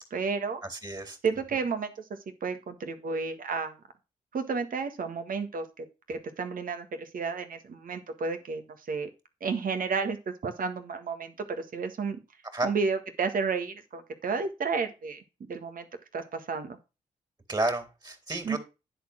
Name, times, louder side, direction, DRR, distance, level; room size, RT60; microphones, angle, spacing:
voice 1, 0.1-0.6 1.2-3.8 4.3-9.1 9.4-12.2 12.6-15.2 15.5-15.9 16.1-16.8 18.4-18.6, right 5 dB, 65° right, 8 dB, 1.7 m, -32 dB
voice 2, 0.7-1.2 12.5-12.7 17.5-18.6, right 2 dB, 25° right, 7 dB, 3.2 m, -31 dB
10.0 x 4.5 x 6.1 m, 0.29 s
supercardioid pair, 45°, 15 cm